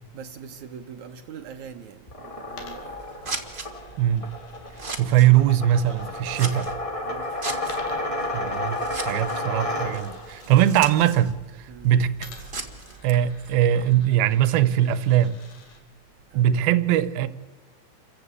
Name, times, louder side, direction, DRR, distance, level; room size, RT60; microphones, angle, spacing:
voice 1, 0.1-3.1 6.3-6.6 7.0-7.5 11.7-11.9 12.3-12.7 16.3-16.5, right 7 dB, 65° right, 2.1 m, -43 dB
sound 1, 2.1-10.4, left 1 dB, 15° left, 1.5 m, -31 dB
Coin (dropping), 2.5-6.8 7.6-11.2 12.2-15.8, left 4 dB, 75° left, 4.5 m, -50 dB
Scissors, 2.5-13.9, right 3 dB, 45° right, 0.6 m, -39 dB
voice 2, 5.0-6.7 8.3-8.8 9.1-11.4 11.8-12.1 13.0-15.4 16.4-17.3, right 11 dB, 85° right, 2.8 m, -20 dB
28.5 x 15.0 x 8.3 m
omnidirectional pair, 4.2 m